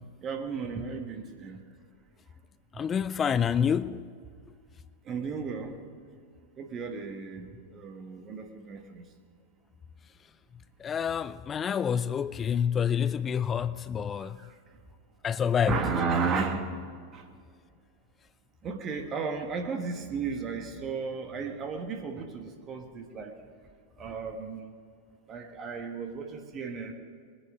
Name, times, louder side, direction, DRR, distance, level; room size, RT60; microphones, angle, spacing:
voice 1, 0.2-1.6 5.0-5.8 6.6-9.0 14.2-14.6 15.7-16.9 17.1-17.2 18.6-23.4 24.0-24.7 25.3-26.9, right 5 dB, 30° right, 1.4 m, -34 dB
voice 2, 2.7-4.0 10.8-14.4 15.2-15.8, left 8 dB, 20° left, 0.3 m, -27 dB
21.0 x 10.0 x 5.0 m
figure-of-eight pair, 90°, 0 cm